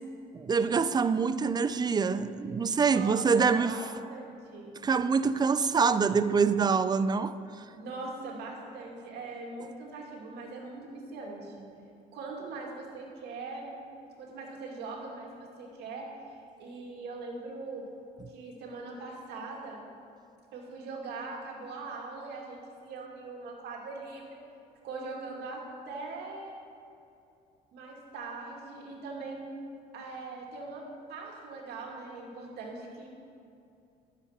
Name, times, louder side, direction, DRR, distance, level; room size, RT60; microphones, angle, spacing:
voice 1, 0.3-3.8 4.8-7.4, right 5 dB, 25° right, 0.4 m, -25 dB
voice 2, 2.8-3.8 4.1-4.7 7.7-11.6 12.1-13.7 14.2-17.9 18.3-19.8 20.5-24.4 24.8-26.5 27.7-29.5 29.9-33.1, right 3 dB, 75° right, 2.3 m, -41 dB
12.5 x 7.4 x 5.7 m
cardioid pair, 110°, 17 cm